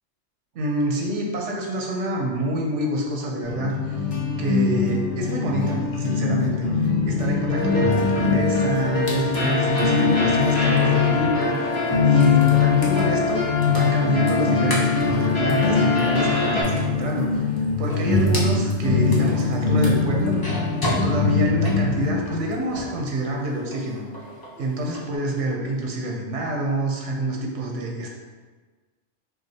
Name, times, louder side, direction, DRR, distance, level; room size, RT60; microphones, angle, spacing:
voice 1, 0.5-4.0 4.4-11.7 12.0-20.4 20.9-24.1 24.6-28.1, right 1 dB, 85° right, 0 dB, 1.0 m, -27 dB
sound 1, 3.4-11.4 11.9-22.7, left 5 dB, 80° left, 1.1 m, -23 dB
sound 2, 7.5-16.6, left 3 dB, 50° left, 1.5 m, -25 dB
sound 3, 7.9-23.0 23.4-25.1, equal, 25° left, 0.7 m, -35 dB
5.9 x 2.4 x 2.8 m, 1.4 s
omnidirectional pair, 1.2 m